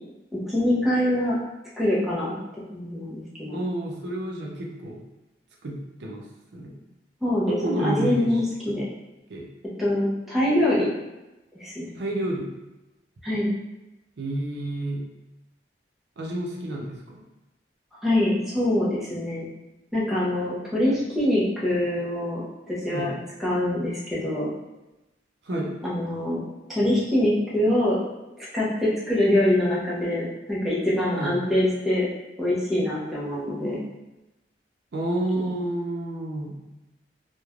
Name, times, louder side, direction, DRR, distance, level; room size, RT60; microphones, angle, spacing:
voice 1, 0.5-1.4 1.8-2.3 2.7-3.6 7.2-8.8 9.8-10.9 11.6-11.9 13.2-13.5 18.0-19.5 19.9-22.4 22.7-23.1 23.4-24.5 25.8-26.4 26.7-28.0 28.4-32.1 32.4-33.8, left 1 dB, ahead, -8 dB, 0.6 m, -24 dB
voice 2, 3.5-5.0 5.6-6.2 6.5-6.8 7.5-8.4 8.7-8.8 9.3-9.5 12.0-12.5 14.2-15.0 16.2-17.2 22.9-23.1 25.4-25.7 31.1-31.3 34.9-36.6, right 1 dB, 75° right, -2 dB, 0.5 m, -29 dB
3.1 x 2.1 x 2.3 m, 1.0 s
head